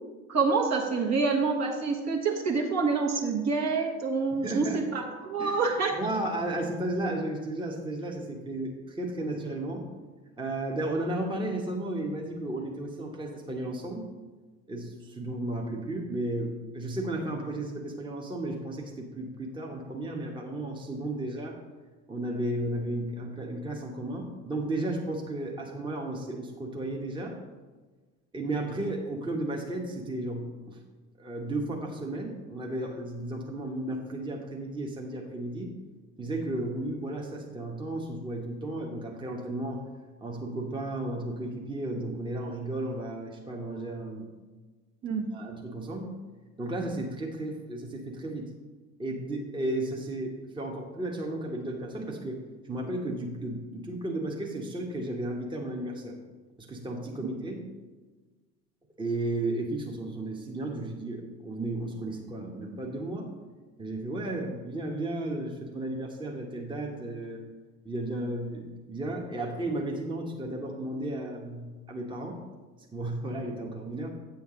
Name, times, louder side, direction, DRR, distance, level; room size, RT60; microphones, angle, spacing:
voice 1, 0.3-5.9 45.0-45.3 57.2-57.3, right 4 dB, 40° right, 0 dB, 1.5 m, -27 dB
voice 2, 4.3-4.8 5.4-5.6 6.0-9.8 10.4-14.1 14.7-21.6 22.1-27.4 28.3-30.8 31.2-35.7 36.2-39.9 40.2-44.3 45.3-46.1 46.6-48.5 49.0-56.1 56.6-57.6 59.0-63.3 63.8-67.4 67.8-72.4 72.9-74.1, right 1 dB, 10° right, 0 dB, 1.2 m, -34 dB
8.8 x 7.1 x 3.8 m, 1.3 s
figure-of-eight pair, 60°, 39 cm